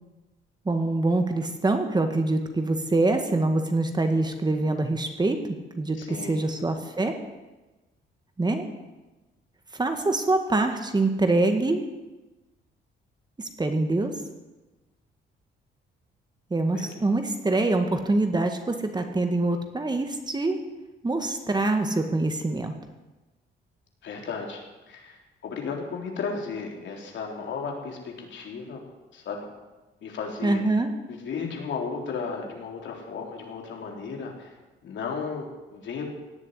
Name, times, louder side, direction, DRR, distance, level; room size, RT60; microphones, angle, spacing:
voice 1, 0.7-7.2 8.4-8.7 9.7-11.8 13.4-14.2 16.5-20.6 21.0-22.7 30.4-30.9, right 2 dB, 20° right, 6 dB, 1.8 m, -25 dB
voice 2, 6.0-6.5 16.7-16.9 24.0-25.2 25.4-28.8 29.1-29.5 30.0-30.6 31.1-34.5 34.8-36.1, left 5 dB, 70° left, 1 dB, 3.7 m, -34 dB
17.5 x 7.2 x 10.0 m, 1.1 s
cardioid pair, 90°, 20 cm